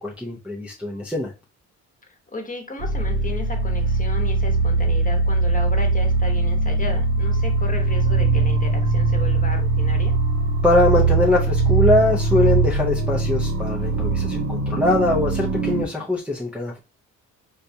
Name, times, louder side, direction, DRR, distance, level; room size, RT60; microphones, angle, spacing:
voice 1, 0.0-1.3 10.6-16.8, left 2 dB, 5° right, -4 dB, 0.5 m, -22 dB
voice 2, 2.1-10.2, left 2 dB, 25° left, 3 dB, 1.0 m, -35 dB
sound 1, 2.8-15.9, right 3 dB, 45° right, 0.7 m, -21 dB
4.1 x 2.3 x 2.6 m, 0.29 s
cardioid pair, 90°, 30 cm